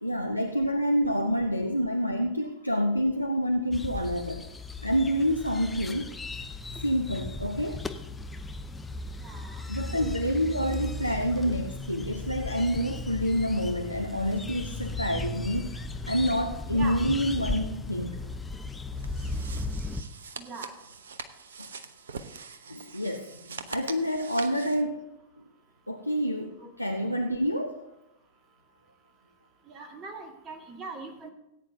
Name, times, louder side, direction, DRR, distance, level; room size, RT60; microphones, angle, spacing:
voice 1, 0.0-4.4 4.8-6.1 6.8-7.8 9.7-15.7 16.1-18.1 22.7-23.3 23.7-25.0 25.9-26.5 26.8-27.8, equal, 90° left, 4 dB, 0.7 m, -27 dB
sound 1, 3.7-20.0, left 2 dB, 10° left, 0.8 m, -36 dB
voice 2, 9.2-9.6 9.9-10.1 16.7-17.0 20.4-20.7 29.7-31.3, right 3 dB, 30° right, 4 dB, 1.9 m, -41 dB
sound 2, 19.0-24.8, right 5 dB, 65° right, 0.8 m, -43 dB
18.0 x 9.2 x 2.7 m, 0.90 s
figure-of-eight pair, 90°, 0 cm